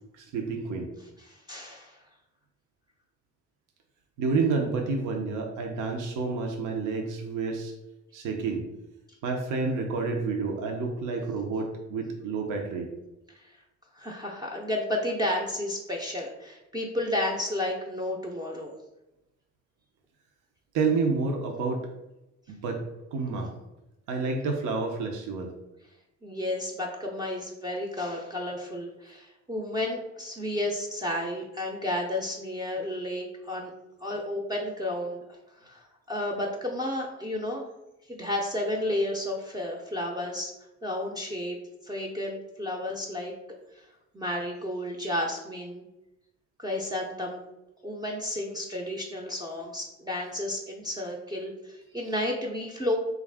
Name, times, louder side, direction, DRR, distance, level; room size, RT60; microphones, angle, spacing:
voice 1, 0.1-0.9 4.2-7.7 8.1-8.6 9.2-12.9 20.7-21.9 22.5-22.8 23.1-23.5 24.1-25.5, right 4 dB, 85° right, 2 dB, 0.6 m, -29 dB
voice 2, 1.3-2.0 13.4-13.5 13.9-18.7 26.2-33.7 34.0-35.2 35.6-37.7 38.1-40.5 40.8-41.6 41.8-43.3 43.7-43.8 44.1-45.9 46.6-47.4 47.8-53.0, left 1 dB, 15° right, 0 dB, 0.5 m, -32 dB
3.4 x 2.4 x 3.3 m, 0.95 s
cardioid pair, 90°, 30 cm